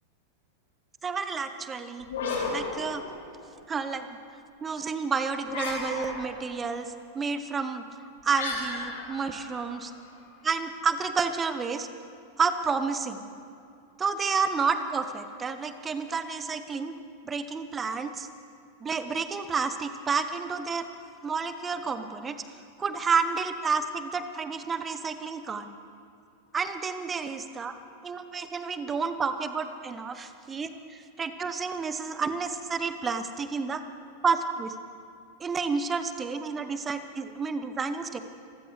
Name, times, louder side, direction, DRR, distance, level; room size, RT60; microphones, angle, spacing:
voice 1, 1.0-2.1 2.5-3.0 3.7-4.1 4.6-7.8 8.2-9.9 10.4-11.9 12.4-13.3 14.0-17.0 17.2-18.3 18.8-20.9 21.2-22.4 22.8-25.7 26.5-27.8 28.0-33.8 34.2-34.7 35.4-38.2, right 5 dB, 20° right, 10 dB, 1.0 m, -30 dB
sound 1, 2.0-3.6 5.4-6.5 8.3-10.2, left 3 dB, 60° left, 3.1 m, -34 dB
25.5 x 15.0 x 3.3 m, 2.5 s
figure-of-eight pair, 90°, 0 cm